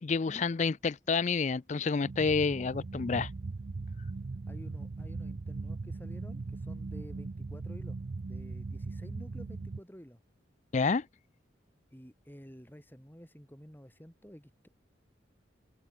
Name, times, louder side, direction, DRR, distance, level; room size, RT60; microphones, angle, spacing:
voice 1, 0.0-3.3 10.7-11.1, left 4 dB, 40° left, 0.4 m, -29 dB
sound 1, 2.0-9.8, right 3 dB, 50° right, 0.5 m, -39 dB
voice 2, 4.5-8.0 8.2-10.2 11.9-14.7, equal, 10° left, 6.7 m, -51 dB
open air
head